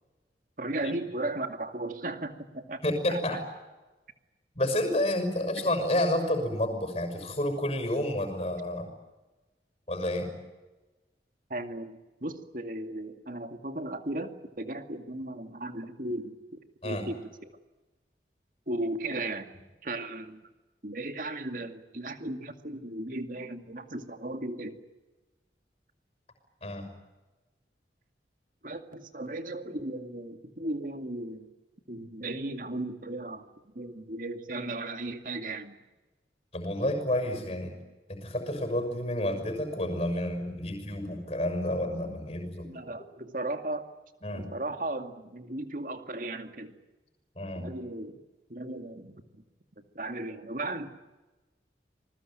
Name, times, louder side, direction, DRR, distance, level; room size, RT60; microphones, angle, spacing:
voice 1, 0.6-2.8 3.1-3.4 5.6-5.7 11.5-17.5 18.7-19.5 19.8-20.4 20.8-24.8 28.6-31.5 31.9-33.5 33.7-35.8 42.6-43.8 44.3-46.8 47.5-48.2 48.5-49.2 49.8-50.9, right 2 dB, 50° right, 7 dB, 2.2 m, -36 dB
voice 2, 2.8-3.4 4.6-8.9 9.9-10.3 16.8-17.1 26.6-26.9 36.5-37.8 38.1-42.7 44.2-44.5 47.3-47.7, left 1 dB, 35° left, 6 dB, 6.4 m, -30 dB
27.5 x 21.0 x 9.2 m, 1.1 s
head